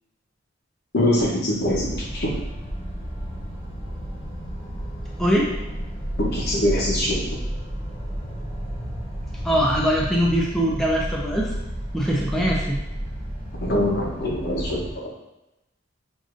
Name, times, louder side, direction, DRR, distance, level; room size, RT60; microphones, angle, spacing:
voice 1, 0.9-2.3 6.2-7.1 13.6-15.1, left 1 dB, 55° left, -1 dB, 0.8 m, -23 dB
sound 1, 1.6-15.0, equal, 30° left, 0.9 m, -32 dB
voice 2, 5.2-5.6 9.4-11.5 11.9-12.8, equal, ahead, -4 dB, 0.5 m, -22 dB
6.4 x 2.6 x 2.5 m, 0.92 s
head